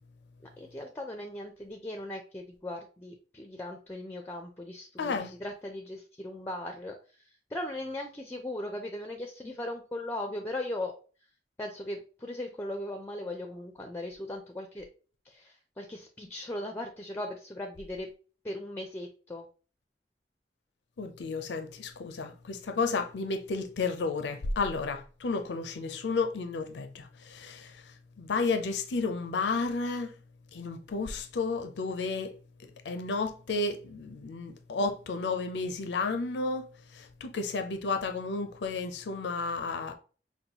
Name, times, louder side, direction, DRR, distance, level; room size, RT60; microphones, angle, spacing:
voice 1, 0.6-6.9 7.5-10.9 11.6-14.9 15.3-18.1 18.4-19.5, left 1 dB, 15° left, 0.4 m, -38 dB
voice 2, 5.0-5.3 21.0-30.1 30.5-32.3 32.6-36.7 36.9-39.9, left 4 dB, 75° left, 0.5 m, -32 dB
5.3 x 2.2 x 2.9 m
head